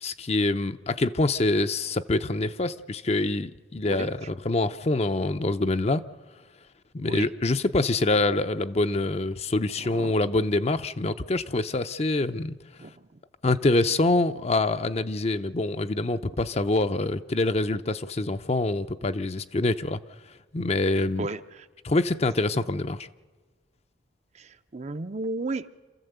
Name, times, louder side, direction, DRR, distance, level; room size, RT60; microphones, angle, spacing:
voice 1, 0.0-6.0 6.9-12.6 13.4-20.0 20.5-21.3 21.8-23.1, left 2 dB, 35° left, 0.6 m, -25 dB
voice 2, 9.8-10.2 12.8-13.1 21.2-21.7 24.3-25.7, right 2 dB, 35° right, 0.6 m, -34 dB
27.5 x 14.5 x 8.0 m
head